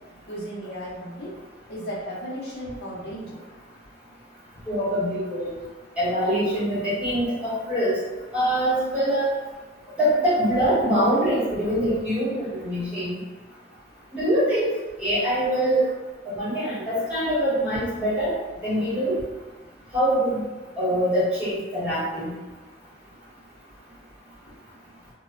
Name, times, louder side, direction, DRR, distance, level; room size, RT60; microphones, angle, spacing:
voice 1, 0.3-1.3 1.7-3.4 24.5-24.6, equal, 60° left, -7 dB, 0.7 m, -35 dB
voice 2, 4.7-5.5 6.0-8.0 8.3-9.3 10.0-13.1 14.1-14.7 15.0-15.9 16.2-18.3 18.6-19.2 19.9-20.4 20.8-22.3, equal, 5° right, -12 dB, 1.1 m, -24 dB
2.7 x 2.1 x 2.4 m, 1.2 s
head